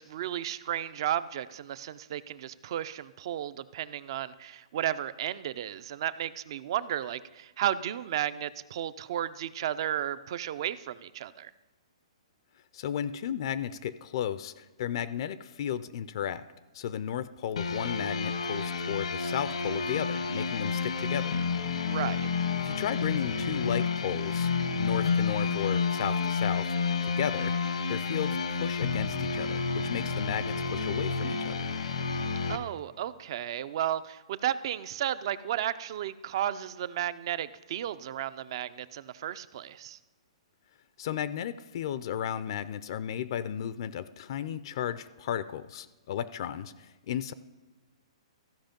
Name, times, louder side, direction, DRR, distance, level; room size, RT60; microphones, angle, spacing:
voice 1, 0.0-11.5 21.9-22.3 32.5-40.0, right 11 dB, 50° right, 16 dB, 0.4 m, -33 dB
voice 2, 12.7-16.4 16.7-21.4 22.6-24.5 24.8-26.7 27.0-27.5 27.9-31.7 41.0-47.3, left 9 dB, 50° left, 15 dB, 0.4 m, -34 dB
sound 1, 17.6-32.6, left 5 dB, 85° left, 1.0 m, -30 dB
14.5 x 5.2 x 5.2 m, 1.1 s
hypercardioid pair, 155°, 3 cm